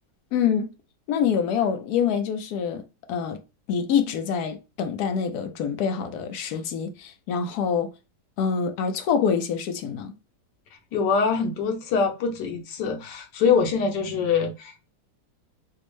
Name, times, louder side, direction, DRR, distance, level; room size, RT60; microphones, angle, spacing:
voice 1, 0.3-0.7 1.1-3.4 3.7-7.9 8.4-10.1, left 7 dB, 70° left, 1.0 m, -26 dB
voice 2, 10.9-14.9, left 5 dB, 85° left, 1.4 m, -24 dB
4.3 x 2.0 x 3.1 m
omnidirectional pair, 1.8 m